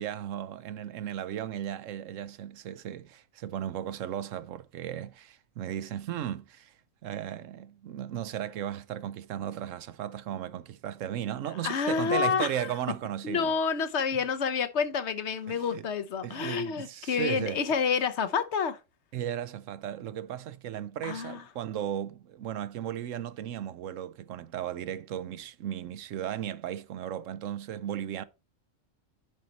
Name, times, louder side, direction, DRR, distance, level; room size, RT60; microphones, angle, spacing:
voice 1, 0.0-6.7 7.0-13.5 15.5-15.9 16.2-17.6 19.1-28.2, right 10 dB, 80° right, 1.0 m, -35 dB
voice 2, 11.6-12.5 13.2-18.8 21.0-21.4, left 6 dB, 65° left, 1.0 m, -28 dB
10.5 x 4.4 x 4.0 m
omnidirectional pair, 1.3 m